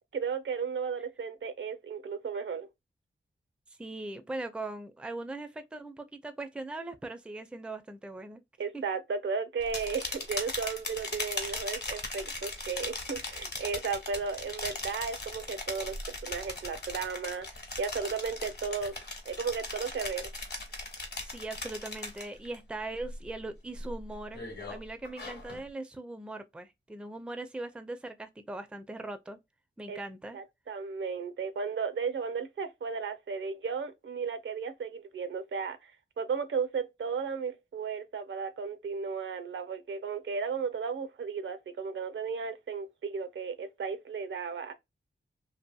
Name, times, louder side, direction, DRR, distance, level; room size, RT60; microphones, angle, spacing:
voice 1, 0.1-2.7 8.6-17.5 17.8-18.9 19.3-20.3 29.9-30.0 30.3-35.9 36.2-44.7, right 5 dB, 70° right, 0.5 m, -34 dB
voice 2, 3.8-8.4 8.7-8.8 21.1-24.4 24.7-29.4 29.8-30.4, right 2 dB, 5° right, 0.4 m, -40 dB
sound 1, 9.6-22.6 22.9-23.3 23.7-25.6, left 2 dB, 50° left, 1.0 m, -39 dB
2.7 x 2.6 x 2.2 m
wide cardioid pair, 65°, 21 cm